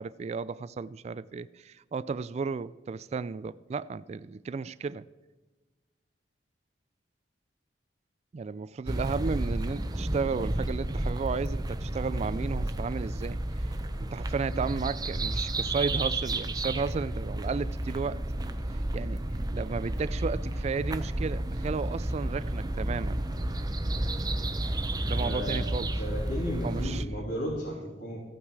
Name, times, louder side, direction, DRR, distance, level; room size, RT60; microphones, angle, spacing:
voice 1, 0.0-5.1 8.3-13.4 14.0-18.2 18.9-19.2 19.5-23.2 25.1-25.9 26.6-27.1, right 5 dB, 40° right, 0.3 m, -33 dB
sound 1, 8.9-27.0, right 1 dB, 25° right, 0.7 m, -31 dB
voice 2, 25.2-28.2, equal, 70° left, 2.8 m, -34 dB
15.0 x 8.7 x 4.8 m
head